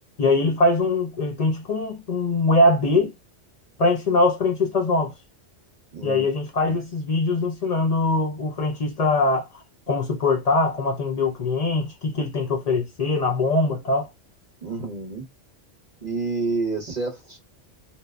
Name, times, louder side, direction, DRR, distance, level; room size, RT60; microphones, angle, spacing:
voice 1, 0.2-3.1 3.8-5.1 6.0-9.5 9.9-14.1, left 2 dB, 50° left, 0.4 m, -22 dB
voice 2, 5.9-6.3 6.6-6.8 14.6-15.3 16.0-17.4, right 3 dB, 40° right, 0.8 m, -29 dB
2.8 x 2.0 x 2.3 m
omnidirectional pair, 1.2 m